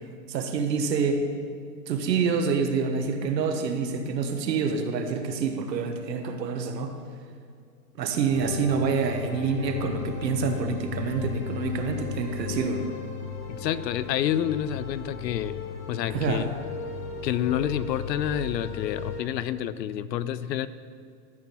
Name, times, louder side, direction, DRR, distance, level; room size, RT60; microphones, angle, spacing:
voice 1, 0.3-1.2 1.9-6.9 8.0-12.8 16.1-16.5 17.4-17.6, right 5 dB, 85° right, 5 dB, 1.4 m, -27 dB
sound 1, 8.3-19.2, left 6 dB, 65° left, 2.6 m, -36 dB
voice 2, 13.5-15.6 15.9-16.5 17.2-20.7, left 10 dB, 85° left, 15 dB, 0.7 m, -28 dB
13.0 x 4.4 x 7.0 m, 2.2 s
supercardioid pair, 155°, 49 cm